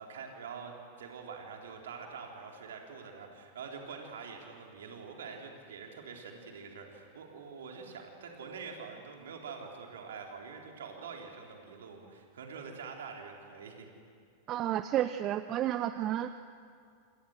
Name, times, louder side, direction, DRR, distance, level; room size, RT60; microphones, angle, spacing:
voice 1, 0.0-13.9, right 5 dB, 60° right, 1 dB, 3.9 m, -45 dB
voice 2, 14.5-16.4, right 12 dB, 35° right, 12 dB, 0.7 m, -31 dB
28.0 x 27.5 x 6.6 m, 2.3 s
figure-of-eight pair, 90°, 0 cm